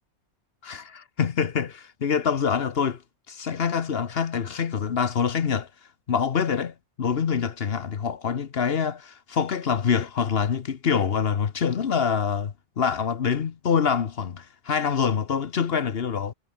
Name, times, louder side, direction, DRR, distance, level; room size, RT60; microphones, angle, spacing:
voice 1, 0.6-3.0 3.3-5.7 6.1-16.3, left 7 dB, 60° left, 1.2 m, -25 dB
omnidirectional pair, 1.2 m